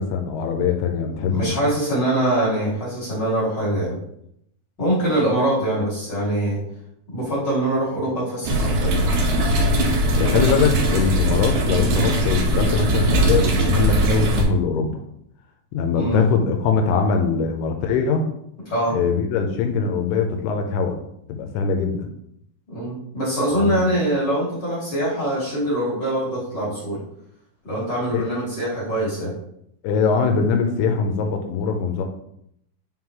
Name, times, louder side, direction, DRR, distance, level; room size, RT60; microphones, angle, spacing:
voice 1, 0.0-1.5 10.2-15.0 15.7-18.2 18.9-21.0 21.3-22.1 23.6-23.9 28.1-28.3 29.8-32.0, left 5 dB, 85° left, 4 dB, 2.6 m, -22 dB
voice 2, 1.1-4.0 4.8-6.6 7.1-9.0 15.9-16.2 18.7-19.0 22.7-27.0 27.6-29.3, right 1 dB, 35° left, -7 dB, 1.8 m, -23 dB
sound 1, 8.4-14.4, right 1 dB, 70° right, 1.8 m, -20 dB
9.3 x 3.8 x 3.1 m, 0.73 s
omnidirectional pair, 4.7 m